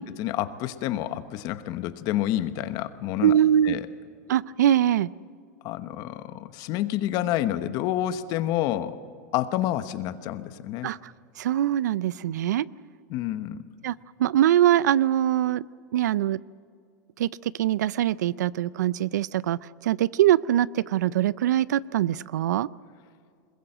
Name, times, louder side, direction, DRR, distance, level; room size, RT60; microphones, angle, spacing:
voice 1, 0.2-3.4 3.6-3.9 5.6-9.0 9.3-10.9 13.1-13.6, left 13 dB, 45° left, 12 dB, 1.1 m, -28 dB
voice 2, 3.2-3.8 4.3-5.1 10.8-11.0 11.4-12.7 13.8-13.9 14.2-15.6 15.9-16.4 17.2-17.3 17.6-22.7, right 11 dB, 90° right, 20 dB, 0.5 m, -22 dB
21.5 x 21.0 x 7.8 m, 2.2 s
supercardioid pair, 140°, 9 cm